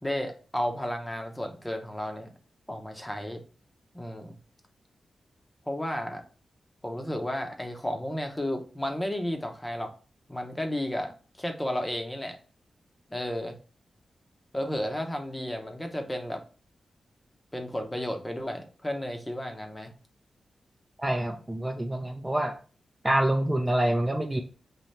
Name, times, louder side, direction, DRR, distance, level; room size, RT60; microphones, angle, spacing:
voice 1, 0.0-2.3 2.7-3.4 3.9-4.4 5.7-6.2 6.8-9.9 10.3-12.4 13.1-13.5 14.5-16.4 17.5-19.9, left 1 dB, 15° left, 4 dB, 0.8 m, -33 dB
voice 2, 21.0-22.5 23.0-24.4, right 1 dB, 20° right, 3 dB, 0.5 m, -26 dB
4.1 x 2.7 x 3.2 m, 0.37 s
cardioid pair, 70°, 0 cm